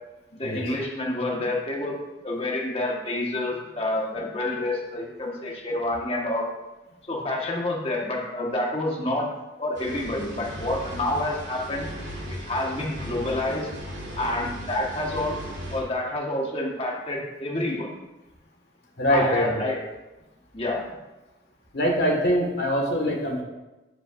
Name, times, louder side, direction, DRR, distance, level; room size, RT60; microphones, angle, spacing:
voice 1, 0.3-2.0 2.2-6.5 7.1-9.3 9.6-11.9 12.3-13.7 14.2-15.4 15.7-17.9 19.1-19.8 20.5-20.9, left 1 dB, 30° left, -2 dB, 1.4 m, -28 dB
sound 1, 9.7-15.8, equal, 85° right, 1.6 m, -37 dB
voice 2, 19.0-19.6 21.7-23.4, equal, 55° left, -1 dB, 1.7 m, -23 dB
10.5 x 5.6 x 2.5 m, 1.1 s
head